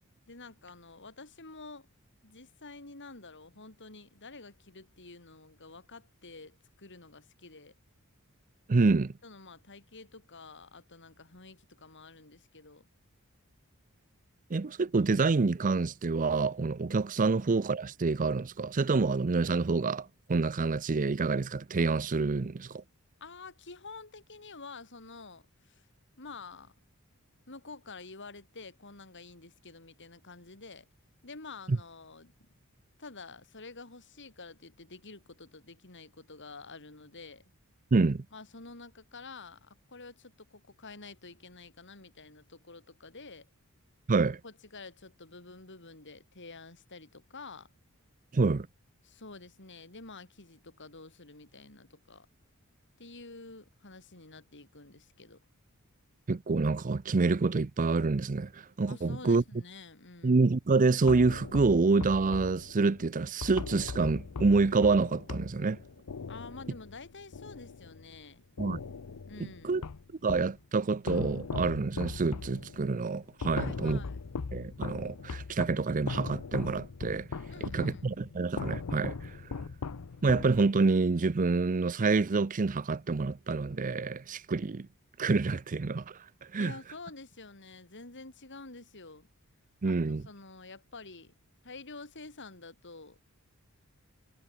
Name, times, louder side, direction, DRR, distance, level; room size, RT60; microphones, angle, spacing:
voice 1, 0.3-1.9 2.2-7.7 9.2-12.9 23.2-25.9 26.2-26.7 27.5-30.9 31.2-32.3 33.0-37.4 38.3-43.5 44.2-47.7 49.0-52.3 53.0-55.4 58.9-60.4 66.3-68.5 69.2-69.7 73.5-74.2 77.5-78.1 86.6-89.3 89.8-91.3 91.6-93.2, left 3 dB, 55° left, 4.3 m, -49 dB
voice 2, 8.7-9.1 14.5-22.8 31.7-31.8 37.9-38.2 44.1-44.4 48.3-48.7 56.3-59.4 60.2-65.8 68.6-68.8 69.6-69.8 70.2-74.0 74.5-77.3 77.6-79.4 80.2-84.9 85.2-86.2 86.5-86.7 89.8-90.2, right 3 dB, 35° right, 0.5 m, -27 dB
sound 1, 61.1-68.2 68.6-70.6 71.1-81.0, left 4 dB, 80° left, 0.7 m, -40 dB
head